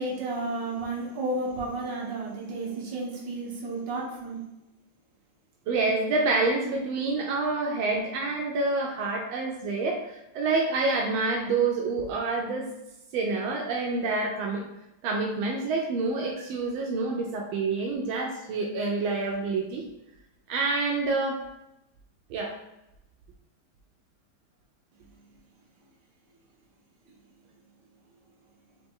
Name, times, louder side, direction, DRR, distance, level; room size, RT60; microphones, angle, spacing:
voice 1, 0.0-4.4, right 2 dB, 65° right, -3 dB, 1.6 m, -32 dB
voice 2, 5.7-12.7 13.1-14.7 15.0-19.8 20.5-21.4 22.3-22.5, right 3 dB, 85° right, 0 dB, 1.4 m, -27 dB
4.1 x 2.9 x 3.6 m, 0.90 s
omnidirectional pair, 2.1 m